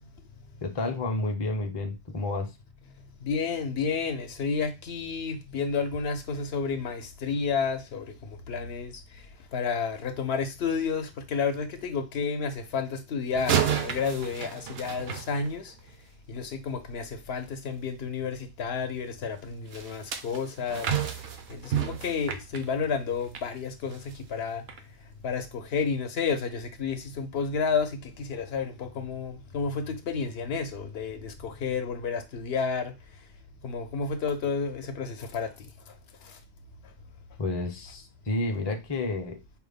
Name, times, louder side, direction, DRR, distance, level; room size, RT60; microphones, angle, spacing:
voice 1, 0.6-2.5 37.4-39.4, left 2 dB, 30° left, 0.6 m, -30 dB
voice 2, 3.2-9.2 9.5-15.7 16.3-20.9 21.5-24.6 25.2-32.9 33.6-35.5 36.2-36.4, left 5 dB, 70° left, 0.8 m, -31 dB
sound 1, 13.3-15.9 19.7-23.5 23.9-24.1 24.7-24.8, right 8 dB, 70° right, 0.8 m, -31 dB
4.6 x 2.0 x 3.4 m
omnidirectional pair, 1.1 m